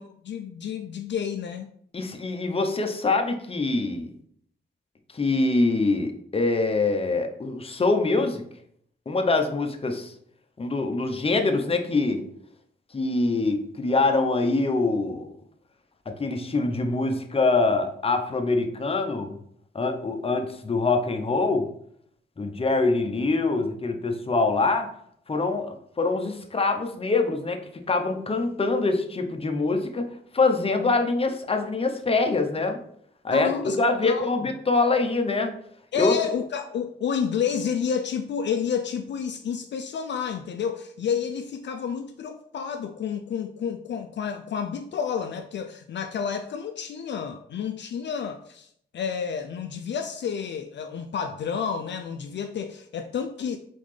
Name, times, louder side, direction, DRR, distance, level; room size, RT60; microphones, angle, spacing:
voice 1, 0.0-1.7 30.8-30.9 33.3-34.5 35.9-53.6, left 7 dB, 65° left, 6 dB, 0.4 m, -30 dB
voice 2, 1.9-4.1 5.1-8.4 9.1-10.1 10.6-12.2 12.9-15.3 16.1-19.4 19.7-21.7 22.4-24.9 25.3-27.6 27.9-32.8 33.2-35.5 36.0-36.2, left 3 dB, 30° left, 5 dB, 0.7 m, -24 dB
4.1 x 3.9 x 3.2 m, 0.68 s
cardioid pair, 70°, 20 cm